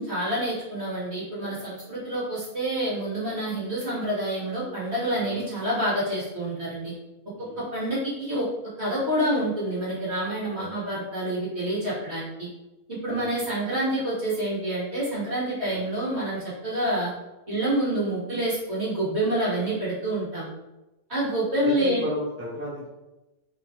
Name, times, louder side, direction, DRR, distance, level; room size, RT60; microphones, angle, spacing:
voice 1, 0.0-6.9 7.7-8.5 8.8-12.5 13.0-17.1 17.5-20.5 21.1-22.0, right 1 dB, 35° right, -7 dB, 2.5 m, -27 dB
voice 2, 13.1-13.4 15.6-15.8 21.6-22.9, left 1 dB, 5° right, -8 dB, 1.6 m, -34 dB
6.7 x 4.4 x 3.4 m, 1.0 s
omnidirectional pair, 1.9 m